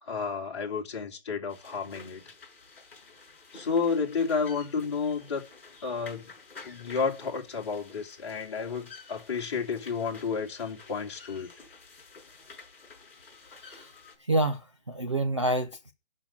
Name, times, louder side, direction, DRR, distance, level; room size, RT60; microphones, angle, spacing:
voice 1, 0.0-2.2 3.5-5.4 5.8-6.3 6.6-11.5, left 5 dB, 25° left, 2.4 m, -31 dB
sound 1, 1.5-14.2, left 4 dB, 5° left, 5.5 m, -51 dB
voice 2, 13.5-13.9 14.2-15.9, right 1 dB, 25° right, 0.6 m, -28 dB
11.5 x 6.0 x 8.6 m
hypercardioid pair, 175°, 34 cm